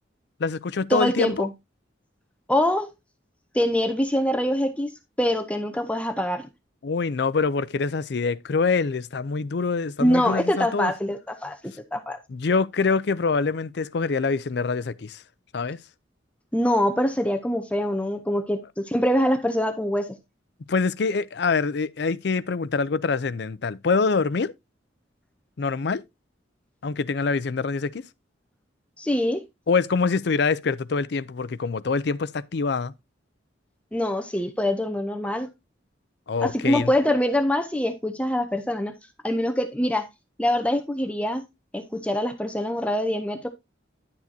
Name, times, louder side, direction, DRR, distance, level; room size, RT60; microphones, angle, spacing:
voice 1, 0.4-1.5 6.8-10.9 12.3-15.2 15.5-15.8 20.7-24.5 25.6-26.0 26.8-28.0 29.7-32.9 36.3-36.9, left 4 dB, 60° left, 0.5 m, -25 dB
voice 2, 0.9-1.5 2.5-2.9 3.5-4.9 5.2-6.5 10.0-12.2 16.5-20.2 29.0-29.4 33.9-35.5 36.4-38.9 39.2-40.1 40.4-41.4 41.7-43.5, left 1 dB, 5° left, 0.6 m, -24 dB
10.5 x 7.4 x 2.7 m
head